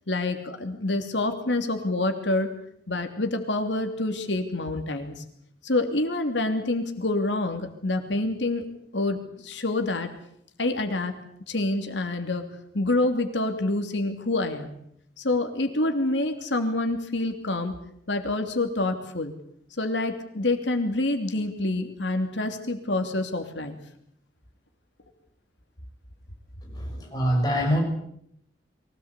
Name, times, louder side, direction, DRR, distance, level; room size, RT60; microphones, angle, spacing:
voice 1, 0.1-2.5 2.9-5.2 5.6-8.6 8.9-10.1 10.6-11.1 11.5-12.4 12.7-14.8 15.2-17.7 18.1-19.3 19.8-23.8, left 2 dB, 90° left, 6 dB, 3.1 m, -27 dB
voice 2, 26.6-27.8, equal, 20° left, 1 dB, 6.5 m, -25 dB
23.5 x 18.0 x 8.4 m, 0.72 s
head